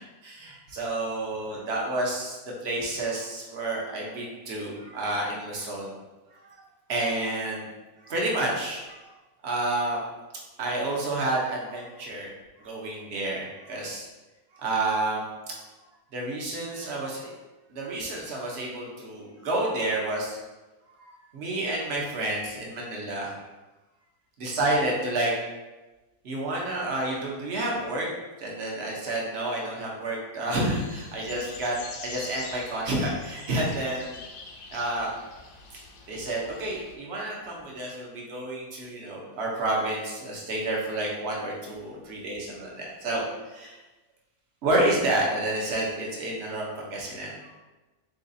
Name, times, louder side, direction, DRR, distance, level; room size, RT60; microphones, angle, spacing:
voice 1, 0.2-6.0 6.3-6.6 6.9-7.7 8.0-9.1 9.4-10.0 10.6-14.1 14.5-15.2 16.1-17.3 17.7-20.4 20.9-23.3 24.4-25.3 26.2-28.1 28.4-31.8 32.0-34.2 34.7-35.1 35.7-35.8 36.1-43.8 44.6-47.6, right 2 dB, 50° right, -2 dB, 0.9 m, -30 dB
sound 1, 30.6-36.9, left 3 dB, 70° left, 1.2 m, -44 dB
4.0 x 3.9 x 2.6 m, 1.1 s
omnidirectional pair, 1.9 m